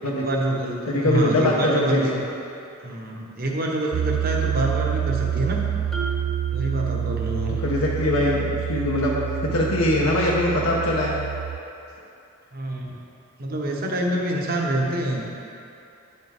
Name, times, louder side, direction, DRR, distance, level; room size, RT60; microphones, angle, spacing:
voice 1, 0.0-2.1 2.8-5.6 6.5-7.6 8.1-8.4 12.5-13.0 13.4-15.3, right 1 dB, 45° right, -1 dB, 1.0 m, -26 dB
voice 2, 0.8-2.2 7.6-9.1 9.5-11.2, left 1 dB, 90° left, -4 dB, 1.0 m, -22 dB
Piano, 3.9-11.6, right 10 dB, 80° right, 0.3 m, -27 dB
Marimba xylophone, 5.9-7.7, right 4 dB, ahead, 0.8 m, -36 dB
9.7 x 6.7 x 3.5 m, 2.7 s
head